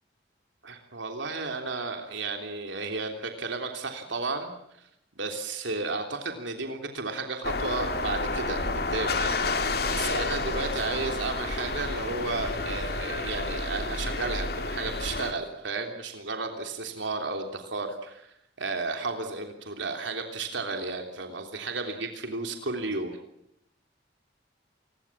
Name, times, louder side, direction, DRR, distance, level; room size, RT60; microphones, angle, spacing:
voice 1, 0.6-4.5 4.8-4.9 5.1-23.1, right 3 dB, 80° right, 4 dB, 3.3 m, -33 dB
sound 1, 7.4-15.3, left 3 dB, 55° left, 2.6 m, -30 dB
28.5 x 21.5 x 7.4 m, 0.79 s
head